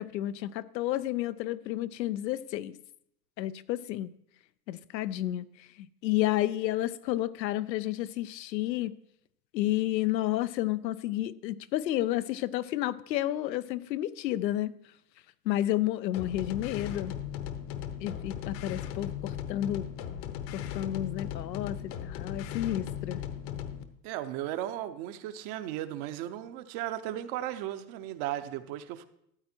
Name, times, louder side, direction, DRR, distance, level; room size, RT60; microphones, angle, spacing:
voice 1, 0.0-2.8 3.4-4.1 4.7-8.9 9.5-14.7 15.5-17.1 18.0-19.9 20.5-23.2, left 14 dB, 85° left, 0.7 m, -31 dB
sound 1, 16.1-23.8, left 9 dB, 50° left, 1.1 m, -37 dB
voice 2, 24.0-29.1, right 12 dB, 40° right, 0.7 m, -36 dB
13.5 x 8.5 x 4.5 m
hypercardioid pair, 130°, 50 cm